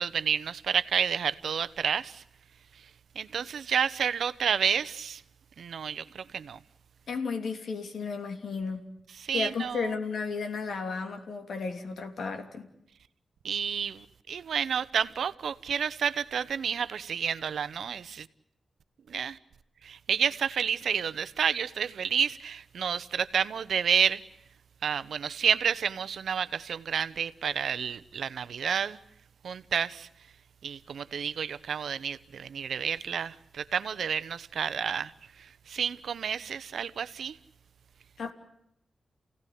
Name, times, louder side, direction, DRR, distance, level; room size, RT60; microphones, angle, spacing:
voice 1, 0.0-2.2 3.1-5.2 5.6-6.6 9.2-9.9 13.4-18.3 19.1-19.4 19.8-24.2 24.8-29.0 29.4-30.1 30.6-35.1 35.4-37.4, right 7 dB, 80° right, 0.9 m, -30 dB
voice 2, 7.1-8.8 9.3-12.7 38.2-38.3, left 5 dB, 70° left, 3.0 m, -33 dB
29.5 x 17.0 x 9.4 m
wide cardioid pair, 150°, 0 cm